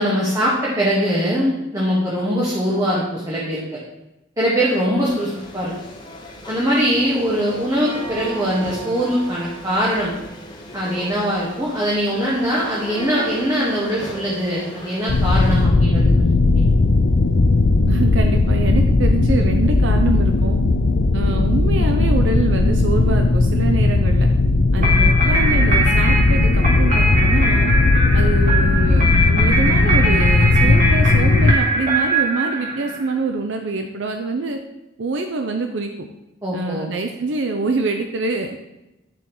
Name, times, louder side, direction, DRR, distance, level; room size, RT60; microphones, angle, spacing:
voice 1, 0.0-3.8 4.4-5.7 6.5-10.1 10.7-16.3 16.5-16.6 36.4-36.9, equal, 20° right, -6 dB, 1.5 m, -22 dB
sound 1, 5.1-15.7, right 1 dB, 25° left, 1.1 m, -36 dB
Spooky Ambiance, 15.1-31.5, left 2 dB, 75° left, 0.5 m, -16 dB
voice 2, 17.9-20.6 21.1-24.3 24.7-27.7 28.1-34.6 35.0-35.9 36.5-38.6, right 3 dB, 75° right, 5 dB, 0.6 m, -25 dB
sound 2, 24.8-33.1, right 1 dB, 40° right, 2.0 m, -21 dB
10.0 x 7.0 x 3.1 m, 0.96 s
head